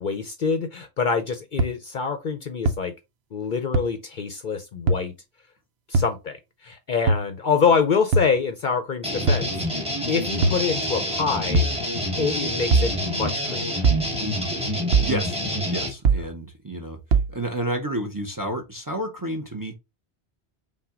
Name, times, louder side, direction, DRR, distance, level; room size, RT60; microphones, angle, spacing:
voice 1, 0.0-2.9 3.3-5.1 5.9-6.4 6.6-11.8 12.2-13.8, left 5 dB, 55° left, 0.6 m, -26 dB
sound 1, 1.6-1.7 2.7-2.8 3.7-3.8 4.9-5.0 5.9-6.1 7.1-7.3 8.1-8.3 9.3-9.5 10.4-10.6 11.5-11.8 12.7-12.9 13.8-14.1 14.9-15.2 16.1-16.3 17.1-17.3, right 3 dB, 70° right, 0.9 m, -20 dB
sound 2, 9.0-15.9, equal, 5° right, 1.2 m, -27 dB
voice 2, 15.1-15.4 15.7-17.0 17.3-19.7, right 1 dB, 20° right, 0.6 m, -30 dB
5.7 x 2.2 x 3.6 m
omnidirectional pair, 1.2 m